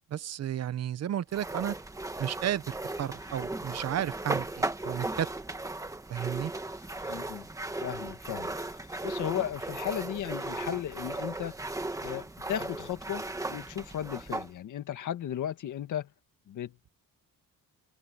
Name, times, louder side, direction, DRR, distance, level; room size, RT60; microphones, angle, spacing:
voice 1, 0.1-1.8 2.2-5.3 6.1-6.5, right 10 dB, 50° right, 0.9 m, -33 dB
sound 1, 1.3-14.5, right 2 dB, 10° right, 1.5 m, -36 dB
sound 2, 2.8-3.4 4.4-5.4 6.2-6.3 6.5-7.2 8.3-9.1 10.6-11.3, left 8 dB, 45° left, 7.5 m, -61 dB
voice 2, 7.1-7.5 7.8-8.5 9.0-11.5 12.0-16.1 16.5-16.9, left 10 dB, 65° left, 2.0 m, -35 dB
open air
cardioid pair, 155°, 33 cm